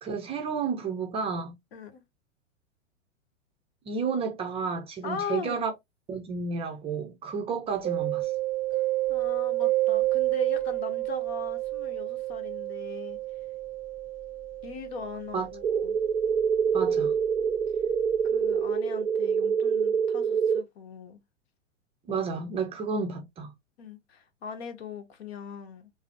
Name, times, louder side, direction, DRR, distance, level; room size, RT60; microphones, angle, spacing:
voice 1, 0.0-1.5 3.9-5.7 6.1-8.3 15.3-15.5 16.7-17.2 22.1-23.5, right 5 dB, 15° right, 0.5 m, -31 dB
voice 2, 1.7-2.0 5.0-5.6 9.1-13.2 14.6-16.0 18.2-21.2 23.8-25.9, left 5 dB, 55° left, 1.1 m, -39 dB
Mallet percussion, 7.8-17.4, right 17 dB, 30° left, 1.5 m, -30 dB
sound 1, 15.6-20.6, right 7 dB, 85° right, 0.6 m, -25 dB
4.7 x 2.0 x 3.1 m
figure-of-eight pair, 105°, 38 cm